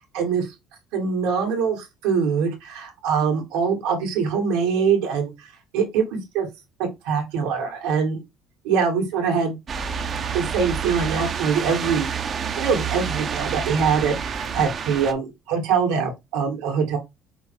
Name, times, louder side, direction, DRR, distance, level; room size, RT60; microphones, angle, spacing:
voice 1, 0.1-0.5 0.9-5.5 5.7-6.5 6.8-8.2 8.6-9.6 10.3-12.1 12.6-17.0, right 6 dB, 85° right, 1.7 m, -23 dB
sound 1, 9.7-15.1, right 6 dB, 45° right, 0.6 m, -28 dB
5.6 x 2.0 x 4.5 m
supercardioid pair, 85°, 0 cm